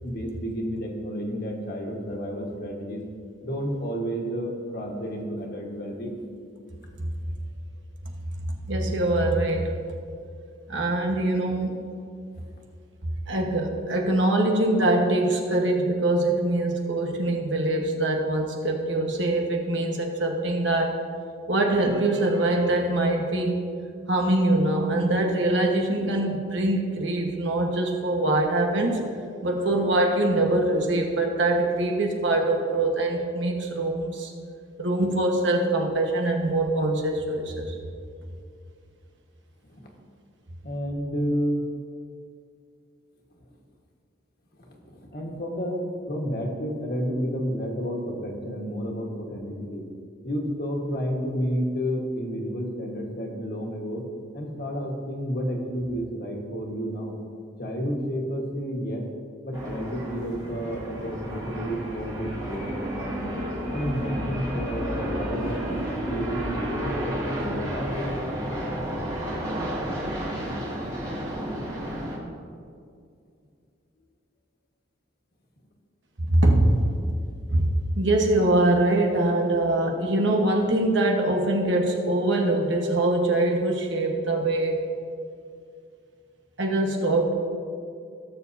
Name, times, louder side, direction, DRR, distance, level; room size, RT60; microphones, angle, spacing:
voice 1, 0.0-3.0 3.4-6.2 39.6-39.9 40.6-41.7 44.6-49.9 50.2-54.0 54.3-57.2 57.6-59.1 59.4-63.3 63.7-65.7 66.0-68.0, equal, 55° left, -1 dB, 1.6 m, -31 dB
voice 2, 8.7-9.8 10.7-11.7 13.3-21.0 21.5-23.7 24.1-29.0 29.4-34.3 34.8-37.7 76.3-76.8 77.5-84.8 86.6-87.3, right 1 dB, 75° right, 1 dB, 1.4 m, -23 dB
sound 1, 59.5-72.2, equal, 20° right, 1.7 m, -31 dB
17.5 x 7.0 x 2.8 m, 2.3 s
head